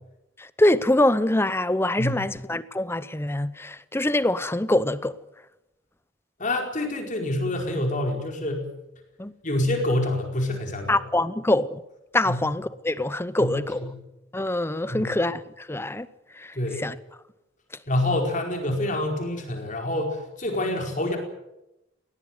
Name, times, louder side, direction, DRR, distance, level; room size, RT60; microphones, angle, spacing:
voice 1, 0.4-5.1 9.2-9.3 10.9-11.8 12.1-13.8 14.3-16.1 16.3-16.9, left 1 dB, 10° left, 0.7 m, -24 dB
voice 2, 6.4-8.7 9.4-11.0 12.3-12.4 13.4-13.9 14.9-15.2 16.5-16.8 17.9-21.2, left 1 dB, 40° left, 4.7 m, -27 dB
21.0 x 18.5 x 9.6 m
head